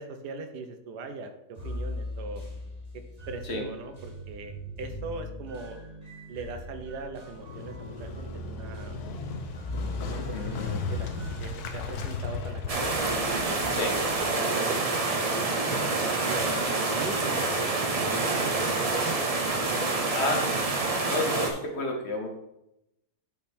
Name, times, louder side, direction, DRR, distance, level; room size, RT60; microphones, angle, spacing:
voice 1, 0.0-2.4 3.3-5.8 6.3-9.0 10.0-13.2 14.3-17.4 17.7-19.2 19.7-19.8 20.1-20.2, right 3 dB, 90° right, 6 dB, 1.4 m, -40 dB
sound 1, 1.6-14.3, equal, 25° right, 1.3 m, -40 dB
Motorcycle, 7.4-14.1, left 5 dB, 75° left, 1.3 m, -36 dB
voice 2, 10.1-10.6 13.7-14.0 20.1-22.3, left 2 dB, 45° left, 2 dB, 1.2 m, -31 dB
sound 2, 12.7-21.5, right 3 dB, 45° right, 0.4 m, -27 dB
9.2 x 3.6 x 4.3 m, 0.86 s
omnidirectional pair, 1.7 m